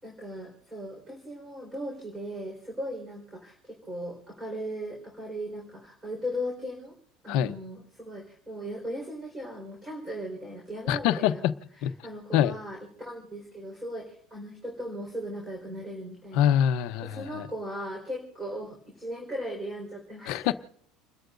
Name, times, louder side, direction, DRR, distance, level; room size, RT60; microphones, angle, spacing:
voice 1, 0.0-6.9 7.2-11.4 11.8-16.5 17.0-20.5, equal, 15° right, 0 dB, 4.5 m, -38 dB
voice 2, 10.9-11.5 11.8-11.9 12.3-12.5 16.3-17.5 20.3-20.5, left 10 dB, 65° left, 10 dB, 0.9 m, -24 dB
30.0 x 13.0 x 2.6 m, 0.64 s
cardioid pair, 145°, 0 cm